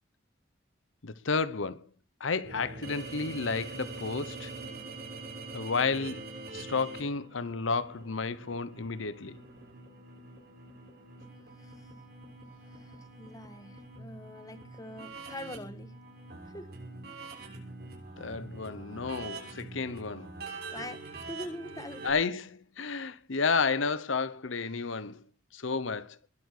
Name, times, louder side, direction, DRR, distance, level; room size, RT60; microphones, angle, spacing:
voice 1, 1.0-1.9 2.2-4.5 5.5-6.2 6.5-9.4 18.2-20.3 22.0-25.2 25.5-26.2, left 4 dB, 85° left, 0.9 m, -31 dB
sound 1, 2.4-22.1, right 3 dB, 50° right, 6.7 m, -44 dB
voice 2, 12.7-15.9 16.5-16.7 20.7-22.2, left 1 dB, 20° left, 1.4 m, -44 dB
21.5 x 8.5 x 6.6 m
head